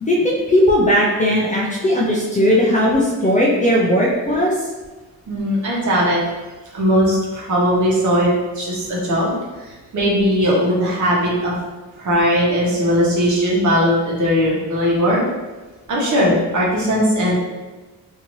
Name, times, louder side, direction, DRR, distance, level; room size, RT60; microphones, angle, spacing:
voice 1, 0.0-4.7, equal, 20° left, -4 dB, 0.3 m, -17 dB
voice 2, 5.3-6.3 6.7-11.5 12.0-15.2 15.9-17.4, equal, 50° right, -5 dB, 1.0 m, -18 dB
3.0 x 2.7 x 2.6 m, 1.2 s
cardioid pair, 145°, 37 cm